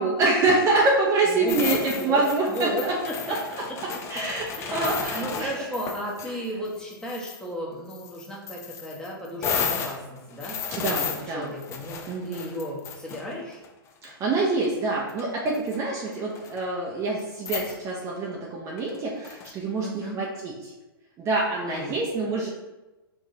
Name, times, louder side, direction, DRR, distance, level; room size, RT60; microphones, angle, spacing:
voice 1, 0.0-2.9 3.3-3.4 4.1-5.5 6.3-6.4 10.8-11.5 12.1-12.6 14.0-20.7 21.2-22.5, right 3 dB, 25° right, -3 dB, 0.6 m, -26 dB
voice 2, 1.3-3.1 4.6-13.6 19.8-20.2 21.6-21.9, equal, 5° left, -4 dB, 1.0 m, -34 dB
sound 1, 1.5-6.3 6.6-7.4 7.9-13.7 14.6-14.7 15.1-15.8 16.1-16.6 17.2-17.3 17.4-17.8 18.8-19.5, left 6 dB, 20° left, 0.4 m, -33 dB
4.9 x 3.6 x 2.7 m, 1.1 s
hypercardioid pair, 130°, 13 cm